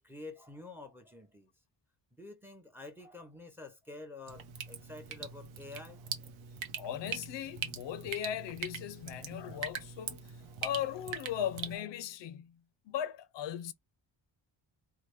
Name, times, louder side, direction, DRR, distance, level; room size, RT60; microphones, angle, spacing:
voice 1, 0.0-1.5 2.1-6.2 9.1-9.3 10.4-10.6, left 3 dB, 5° right, 0.6 m, -49 dB
Drip, 4.3-11.8, right 7 dB, 85° right, 0.8 m, -42 dB
voice 2, 6.8-10.2 10.6-12.6 12.9-13.7, left 10 dB, 65° left, 0.5 m, -38 dB
3.2 x 2.1 x 3.0 m
cardioid pair, 135°, 47 cm